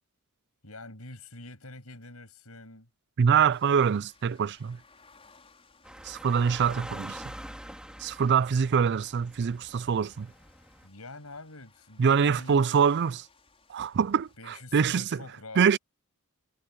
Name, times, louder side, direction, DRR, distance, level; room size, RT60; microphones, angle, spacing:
voice 1, 0.6-2.9 10.8-12.6 14.4-15.7, left 2 dB, 85° left, 7.1 m, -45 dB
voice 2, 3.2-4.8 6.0-7.2 8.0-10.3 12.0-13.3 13.7-15.2 15.6-15.8, right 6 dB, 50° right, 0.4 m, -24 dB
sound 1, 3.5-14.4, left 4 dB, 30° left, 5.2 m, -61 dB
sound 2, 5.8-10.9, equal, 5° right, 2.5 m, -45 dB
head